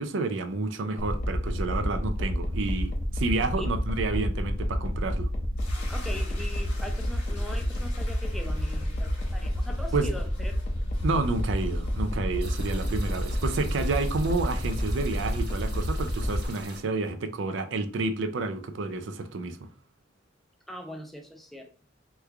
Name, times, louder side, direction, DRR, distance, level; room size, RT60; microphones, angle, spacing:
voice 1, 0.0-5.3 9.9-10.1 11.0-19.7, right 3 dB, 80° right, 0.4 m, -30 dB
sound 1, 1.0-16.5, equal, 45° left, 0.6 m, -29 dB
sound 2, 5.6-16.6, left 2 dB, 75° left, 1.3 m, -50 dB
voice 2, 5.9-10.9 20.7-21.7, left 1 dB, ahead, 0.4 m, -41 dB
sound 3, 12.4-16.8, right 2 dB, 55° right, 0.9 m, -44 dB
3.1 x 2.3 x 3.3 m
head